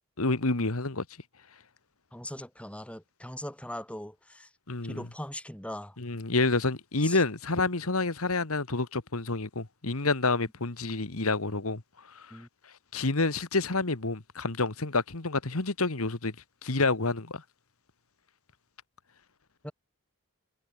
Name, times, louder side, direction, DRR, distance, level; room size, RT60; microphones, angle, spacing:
voice 1, 0.2-1.0 4.7-5.0 6.0-11.8 12.1-12.3 12.9-16.3 16.6-17.4, left 3 dB, 70° left, 1.8 m, -28 dB
voice 2, 2.1-4.5 4.8-6.0 7.0-7.2 12.3-12.5 19.6-19.7, left 1 dB, 5° left, 5.6 m, -40 dB
head